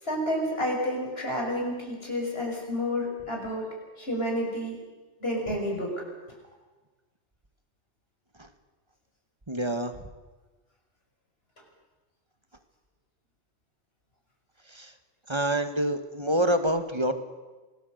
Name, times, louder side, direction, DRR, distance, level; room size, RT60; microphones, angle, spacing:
voice 1, 0.0-3.7 4.0-4.8 5.2-6.0, equal, 60° left, 0 dB, 6.6 m, -30 dB
voice 2, 9.5-9.9 14.7-14.9 15.3-17.1, right 1 dB, 25° right, 8 dB, 1.6 m, -26 dB
26.0 x 18.0 x 8.0 m, 1.2 s
omnidirectional pair, 1.2 m